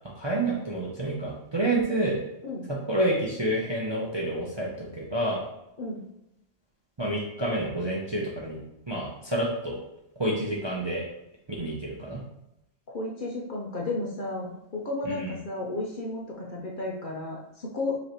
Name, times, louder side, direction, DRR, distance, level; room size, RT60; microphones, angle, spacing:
voice 1, 0.1-2.2 2.7-5.4 7.0-9.8 10.2-11.0 11.6-12.2 15.0-15.3, right 1 dB, 30° right, -4 dB, 0.6 m, -29 dB
voice 2, 12.9-18.0, left 2 dB, 45° left, -2 dB, 0.8 m, -33 dB
5.3 x 3.2 x 3.0 m, 0.89 s
omnidirectional pair, 1.3 m